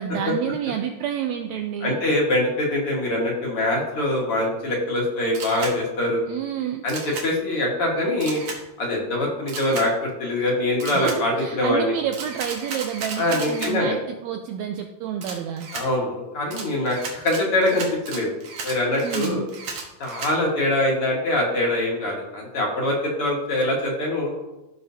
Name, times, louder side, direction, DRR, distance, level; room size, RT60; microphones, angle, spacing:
voice 1, 0.0-2.0 6.3-6.8 10.9-15.7 19.0-19.5, right 9 dB, 85° right, 4 dB, 1.6 m, -29 dB
voice 2, 1.8-6.2 6.8-8.4 8.8-11.9 13.2-14.0 15.7-18.3 18.6-19.4 20.0-24.3, left 1 dB, 50° left, -2 dB, 2.3 m, -23 dB
Camera, 5.3-5.7 6.9-7.3 8.2-8.6 9.5-9.9 10.8-11.2 12.1-13.7 15.2-15.9 16.5-20.3, right 4 dB, 60° right, 2.2 m, -34 dB
15.0 x 5.6 x 2.8 m, 1.0 s
omnidirectional pair, 3.6 m